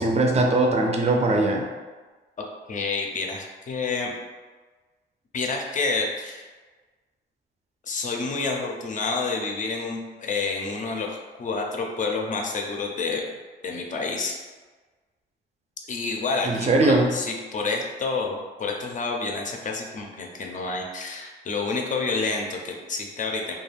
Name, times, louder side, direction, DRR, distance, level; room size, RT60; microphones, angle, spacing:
voice 1, 0.0-1.7 16.4-17.1, right 2 dB, 35° right, 2 dB, 0.5 m, -20 dB
voice 2, 2.7-4.1 5.3-6.5 7.8-13.2 13.6-14.4 15.9-23.5, left 4 dB, 40° left, 1 dB, 0.5 m, -29 dB
2.4 x 2.3 x 3.2 m, 1.3 s
cardioid pair, 90°, 20 cm